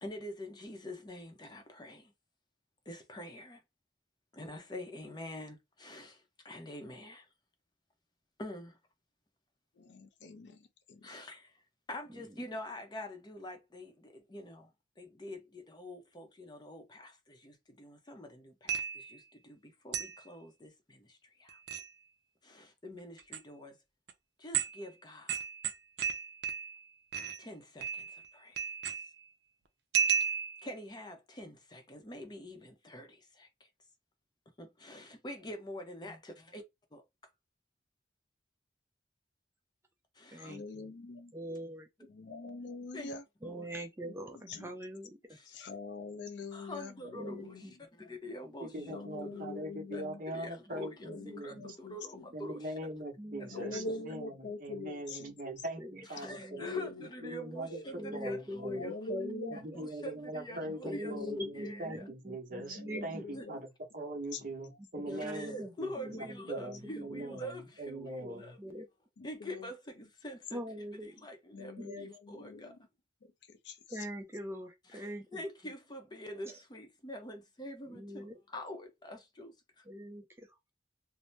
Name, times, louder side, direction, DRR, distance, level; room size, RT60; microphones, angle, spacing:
voice 1, 0.0-2.1 2.9-3.6 4.3-7.3 8.4-8.8 11.0-11.5 11.9-14.7 15.0-21.6 22.4-23.8 24.4-25.4 27.4-28.7 30.6-33.7 34.6-36.6 36.9-37.0 40.2-40.5 42.9-43.1 43.4-43.7 45.3-45.7 46.5-47.6 48.0-49.4 49.9-50.0 50.3-51.1 51.4-52.7 53.4-53.6 56.1-58.9 59.5-61.2 61.5-62.0 63.3-63.5 65.1-68.9 69.2-70.6 71.2-72.7 74.9-79.8, left 1 dB, 25° left, 0.6 m, -46 dB
voice 2, 9.7-11.2 40.4-41.3 42.1-43.2 44.0-44.7 45.5-47.8 48.8-50.2 51.0-52.3 53.5-55.3 56.5-58.0 58.7-59.6 60.5-61.7 62.6-63.6 64.3-64.5 66.1-66.5 66.8-67.3 69.2-69.7 71.5-72.8 73.2-74.1, left 3 dB, 85° left, 0.5 m, -44 dB
sound 1, 18.7-19.1 19.9-20.2 21.5-21.9 23.2-23.4 24.1-24.2 24.5-24.8 25.3-26.8 27.1-27.4 27.8-28.3 28.6-29.2 29.9-30.7, right 7 dB, 70° right, 0.5 m, -33 dB
voice 3, 40.3-40.9 41.3-41.9 43.4-45.4 47.1-47.7 49.3-49.6 50.7-51.7 53.2-53.9 55.8-56.6 58.0-59.8 60.8-63.3 65.0-67.4 68.2-68.9 70.5-71.3 71.8-72.1 73.9-75.4 76.5-76.6 77.8-78.4 79.9-80.6, equal, 15° right, 0.4 m, -43 dB
voice 4, 48.4-51.6 52.3-54.3 54.6-56.8 57.2-58.8 59.5-65.9 66.2-68.5, right 1 dB, 50° right, 0.9 m, -42 dB
2.6 x 2.0 x 3.2 m
head